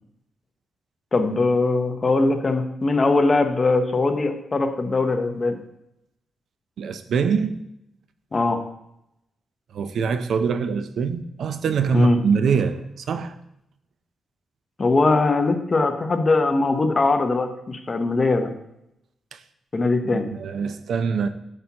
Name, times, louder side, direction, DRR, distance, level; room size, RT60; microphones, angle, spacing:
voice 1, 1.1-5.6 8.3-8.6 11.9-12.2 14.8-18.5 19.7-20.2, left 3 dB, 35° left, 0.8 m, -21 dB
voice 2, 6.8-7.6 9.7-13.3 20.1-21.3, right 5 dB, 75° right, 0.5 m, -24 dB
7.7 x 5.8 x 2.9 m
cardioid pair, 90°, 0 cm